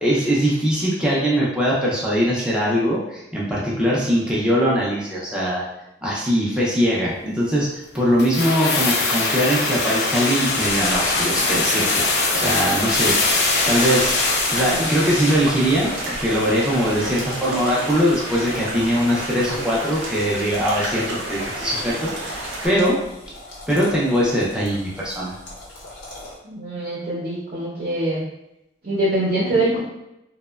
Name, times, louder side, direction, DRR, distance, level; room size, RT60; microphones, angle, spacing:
voice 1, 0.0-5.7 6.0-13.2 13.7-14.2 14.5-23.0 23.7-25.3, equal, 5° right, -6 dB, 0.4 m, -21 dB
sound 1, 8.2-15.5 15.7-15.8, left 3 dB, 60° left, 0.4 m, -22 dB
sound 2, 10.7-22.7, right 1 dB, 90° right, 0.7 m, -31 dB
sound 3, 12.9-26.3, left 1 dB, 90° left, 0.8 m, -34 dB
voice 2, 26.4-28.2 28.8-29.8, right 1 dB, 50° right, -7 dB, 0.6 m, -23 dB
2.8 x 2.1 x 2.2 m, 0.88 s
head